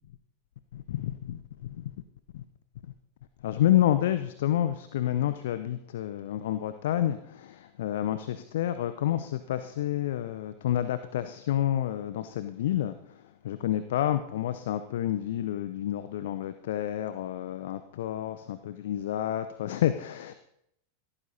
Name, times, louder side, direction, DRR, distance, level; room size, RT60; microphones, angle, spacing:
voice 1, 0.7-1.9 2.3-2.4 3.4-20.3, left 12 dB, 55° left, 11 dB, 0.8 m, -29 dB
16.0 x 14.0 x 4.2 m, 0.75 s
figure-of-eight pair, 90°, 0 cm